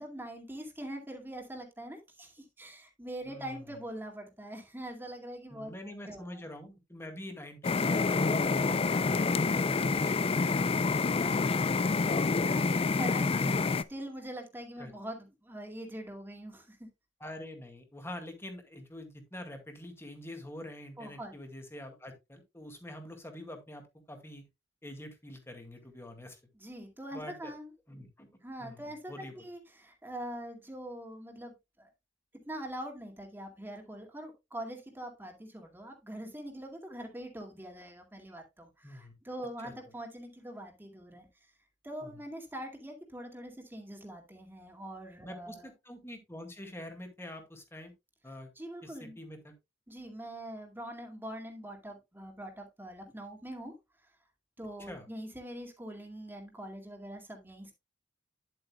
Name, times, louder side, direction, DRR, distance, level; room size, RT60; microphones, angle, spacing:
voice 1, 0.0-5.7 6.1-6.4 11.9-16.9 21.0-21.3 26.5-27.7 28.4-31.9 32.5-41.3 41.8-45.7 48.6-49.2 49.9-53.7 54.6-57.7, right 1 dB, 10° right, 2 dB, 2.1 m, -43 dB
voice 2, 3.3-3.7 5.5-11.7 12.4-13.2 14.8-14.9 17.2-23.8 24.1-24.4 24.8-26.4 27.1-27.5 27.9-28.3 28.6-29.3 38.8-39.1 39.6-39.7 42.0-42.1 45.2-47.9 48.2-48.5 48.8-49.5 54.8-55.1, left 1 dB, 15° left, 5 dB, 2.0 m, -46 dB
sound 1, 7.6-13.8, left 4 dB, 30° left, 0.4 m, -27 dB
10.5 x 7.9 x 2.3 m, 0.22 s
head